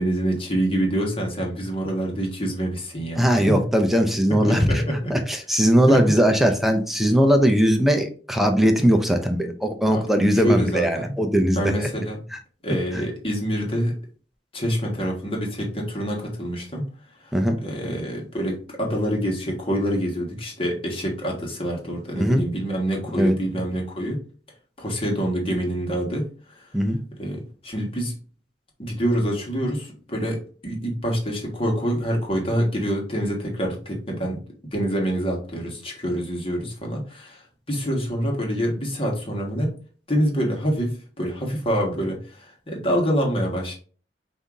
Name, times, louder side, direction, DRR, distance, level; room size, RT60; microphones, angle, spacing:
voice 1, 0.0-3.7 4.3-5.1 5.9-6.0 9.9-11.1 11.5-12.2 12.6-14.0 14.5-16.9 17.2-17.3 17.6-24.2 24.8-26.7 27.2-28.1 28.8-37.4 37.7-39.7 40.1-43.7, equal, 30° left, 0 dB, 1.4 m, -26 dB
voice 2, 3.2-4.8 5.1-11.9 12.9-13.0 17.3-17.6 22.1-22.4 23.1-23.3 26.7-27.0, equal, ahead, 5 dB, 0.6 m, -20 dB
5.5 x 2.7 x 3.6 m, 0.40 s
head